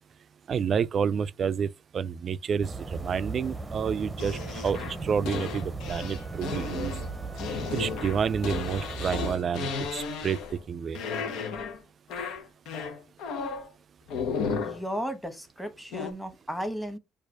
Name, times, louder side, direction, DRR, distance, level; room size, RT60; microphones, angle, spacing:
voice 1, 0.5-6.9 7.7-10.4 10.7-11.0, right 7 dB, 50° right, 0.3 m, -29 dB
sound 1, 2.6-9.3, right 3 dB, 20° right, 0.6 m, -37 dB
sound 2, 4.2-10.7 10.9-11.8 12.1-13.7 14.1-14.8 15.9-16.1, left 5 dB, 90° left, 0.8 m, -34 dB
Wind instrument woodwind instrument, 5.8-10.2, right 1 dB, 40° left, 1.2 m, -54 dB
voice 2, 14.6-17.0, equal, ahead, 1.1 m, -34 dB
4.7 x 2.4 x 4.6 m
cardioid pair, 95°, 0 cm